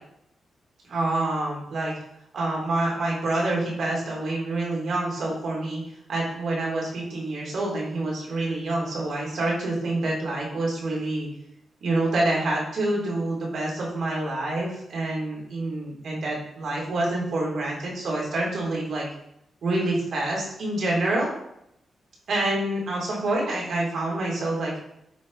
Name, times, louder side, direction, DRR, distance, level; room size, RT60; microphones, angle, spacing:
voice 1, 0.9-1.9 2.3-5.8 6.1-11.3 11.8-19.1 19.6-21.3 22.3-24.8, right 2 dB, 70° right, -3 dB, 3.6 m, -27 dB
11.5 x 4.5 x 4.2 m, 0.79 s
cardioid pair, 80°, 0 cm